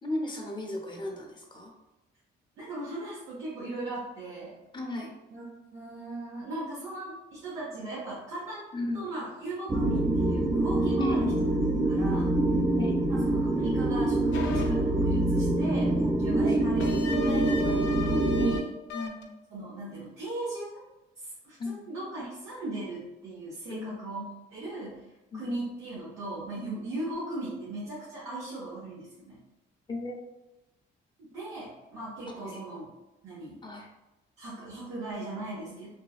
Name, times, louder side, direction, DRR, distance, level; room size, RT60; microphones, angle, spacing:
voice 1, 0.0-1.7 4.7-5.2 8.7-9.1 9.8-10.0 11.0-11.4 12.7-13.0 16.4-16.6 18.9-19.3 21.6-21.8 23.7-24.1 25.3-25.5 29.9-30.2 32.4-32.6 33.6-33.9, left 2 dB, 25° left, 0 dB, 0.6 m, -35 dB
voice 2, 2.6-4.6 5.3-5.4 5.7-8.7 8.9-11.4 11.8-12.4 13.1-18.8 19.5-20.8 21.2-25.1 25.3-29.4 31.3-32.9 33.2-33.6 34.4-35.9, right 2 dB, 80° right, -8 dB, 0.9 m, -38 dB
sound 1, 9.7-18.6, right 1 dB, 15° right, 0.3 m, -25 dB
sound 2, 14.3-14.7 16.8-18.6 18.9-19.2, left 3 dB, 75° left, 0.4 m, -35 dB
3.2 x 2.2 x 2.3 m, 0.98 s
cardioid pair, 90°, 20 cm